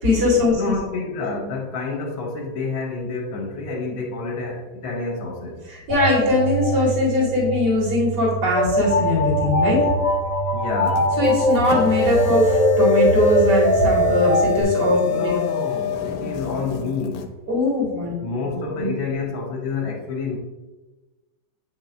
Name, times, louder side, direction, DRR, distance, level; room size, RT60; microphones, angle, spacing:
voice 1, 0.0-0.7 5.7-9.9 11.2-15.3 17.5-18.9, left 2 dB, 60° right, -5 dB, 2.8 m, -21 dB
voice 2, 0.5-5.6 10.5-11.1 15.0-17.3 18.2-20.4, left 4 dB, 90° left, 0 dB, 1.8 m, -28 dB
sound 1, 5.9-14.6, equal, 75° right, 2.6 m, -21 dB
sound 2, 10.9-17.2, left 10 dB, 70° left, 1.3 m, -27 dB
8.7 x 6.0 x 2.6 m, 1.1 s
omnidirectional pair, 2.1 m